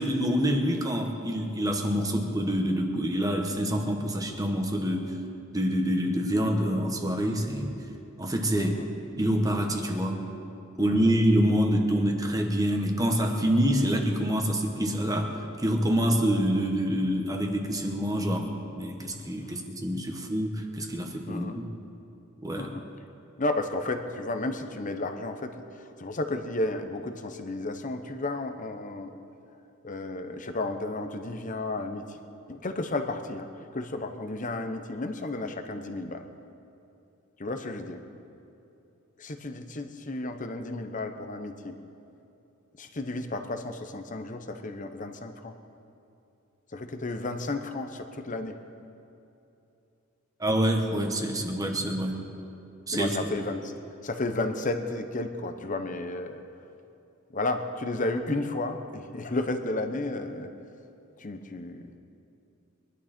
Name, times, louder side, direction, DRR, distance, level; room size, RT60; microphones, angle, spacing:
voice 1, 0.0-5.2 5.5-7.8 8.2-8.8 9.2-10.2 10.8-21.6 22.4-22.7 50.4-52.2 52.9-53.1, equal, 15° right, 2 dB, 1.3 m, -26 dB
voice 2, 8.6-8.9 10.8-11.1 19.5-19.6 21.3-21.6 22.6-22.8 23.4-29.1 29.8-32.2 32.5-36.2 37.4-38.0 39.2-41.8 42.8-45.5 46.7-48.6 52.9-53.7 54.0-56.4 57.3-60.5 61.2-61.9, left 2 dB, 40° left, 7 dB, 1.0 m, -33 dB
23.0 x 11.5 x 4.4 m, 2.8 s
head